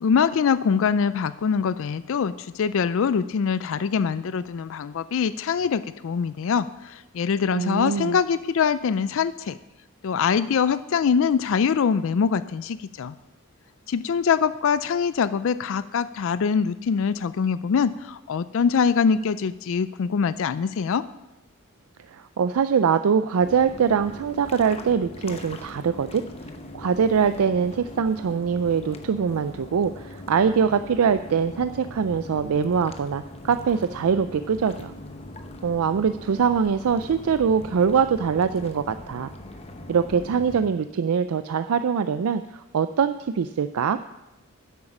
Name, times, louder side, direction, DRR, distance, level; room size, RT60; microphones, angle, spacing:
voice 1, 0.0-9.6 10.0-13.1 13.9-21.1, left 6 dB, 60° left, 15 dB, 0.4 m, -23 dB
voice 2, 7.5-8.2 22.1-26.2 26.7-34.9 35.6-39.3 39.9-44.0, right 6 dB, 75° right, 11 dB, 0.4 m, -23 dB
sound 1, 23.4-40.7, left 1 dB, 30° left, 0.8 m, -41 dB
9.9 x 8.2 x 6.0 m, 0.96 s
head